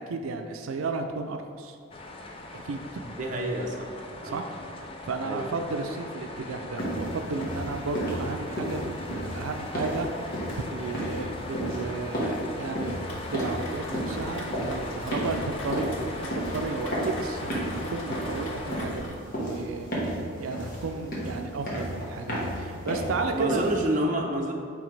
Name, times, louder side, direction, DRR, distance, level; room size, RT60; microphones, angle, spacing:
voice 1, 0.0-1.8 2.5-3.0 4.2-4.5 5.0-15.9 16.2-19.9 20.4-23.7, right 3 dB, 90° right, 5 dB, 0.4 m, -33 dB
sound 1, 1.9-18.8, left 2 dB, 25° left, 0.4 m, -40 dB
voice 2, 3.0-3.9 4.2-4.4 5.2-5.5 23.3-24.5, right 1 dB, 40° right, 0 dB, 0.6 m, -28 dB
sound 2, 6.8-24.0, equal, 45° left, 1.3 m, -33 dB
Rain, 13.0-19.1, left 1 dB, 75° left, 0.9 m, -41 dB
8.6 x 3.4 x 3.3 m, 2.4 s
head